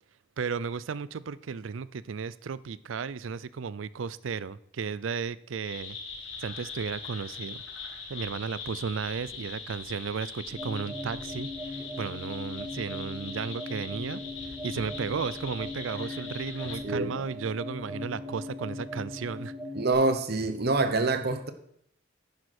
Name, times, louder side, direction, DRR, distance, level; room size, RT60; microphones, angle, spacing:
voice 1, 0.4-6.0 6.4-7.6 8.1-19.5, right 5 dB, 80° right, 18 dB, 0.5 m, -34 dB
sound 1, 5.6-16.8, left 4 dB, 85° left, 2.1 m, -42 dB
sound 2, 10.5-19.9, left 1 dB, 5° right, 4.2 m, -39 dB
voice 2, 16.8-17.2 19.7-21.5, right 3 dB, 55° right, 9 dB, 1.0 m, -26 dB
11.0 x 9.4 x 4.3 m, 0.70 s
head